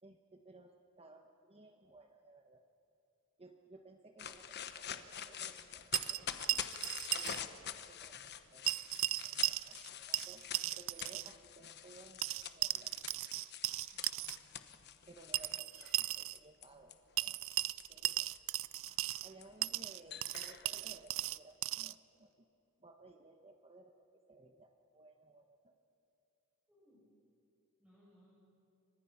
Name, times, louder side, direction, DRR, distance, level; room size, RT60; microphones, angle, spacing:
voice 1, 0.0-2.6 3.4-6.6 7.1-10.4 10.7-13.0 15.1-16.9 17.2-17.4 17.9-18.3 19.2-22.3 22.8-25.8, right 2 dB, 25° right, 4 dB, 1.1 m, -59 dB
sound 1, 4.2-16.9 17.5-21.4, left 9 dB, 50° left, 1.2 m, -46 dB
sound 2, 5.9-7.4 7.7-7.8 8.7-9.9 10.1-11.3 12.2-14.4 15.3-16.4 17.2-19.3 19.6-21.9, right 16 dB, 65° right, 0.5 m, -37 dB
voice 2, 13.8-14.8 26.7-27.0 27.8-28.3, equal, 5° right, -9 dB, 7.9 m, -68 dB
29.5 x 25.5 x 5.8 m, 2.8 s
head